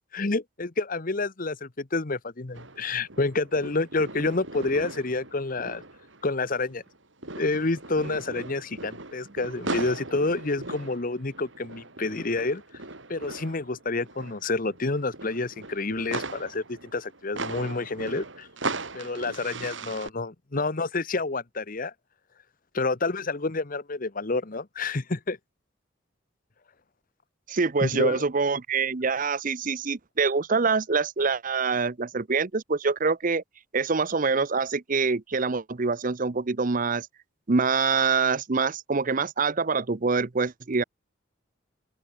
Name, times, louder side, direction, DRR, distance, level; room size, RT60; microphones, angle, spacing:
voice 1, 0.1-5.8 6.2-6.8 7.4-12.6 13.1-18.5 18.9-21.9 22.7-25.4 27.8-28.2, left 3 dB, 45° left, 1.0 m, -29 dB
sound 1, 2.5-7.0 7.2-20.1, right 3 dB, 65° right, 3.9 m, -38 dB
voice 2, 27.5-33.4 33.7-37.1 37.5-40.8, right 4 dB, 40° right, 0.7 m, -25 dB
open air
head